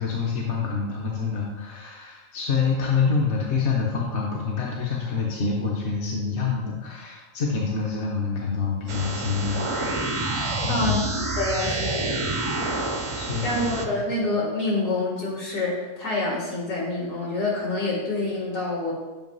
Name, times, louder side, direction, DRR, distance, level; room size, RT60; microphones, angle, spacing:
voice 1, 0.0-9.9 10.6-11.0 12.1-12.2 13.1-13.9, left 5 dB, 60° left, -3 dB, 1.1 m, -27 dB
sound 1, 8.9-13.8, right 2 dB, 55° right, 0.3 m, -28 dB
voice 2, 10.7-11.0 11.4-12.2 13.4-18.9, left 2 dB, 75° left, -5 dB, 2.4 m, -27 dB
7.5 x 2.9 x 5.3 m, 1.2 s
omnidirectional pair, 1.4 m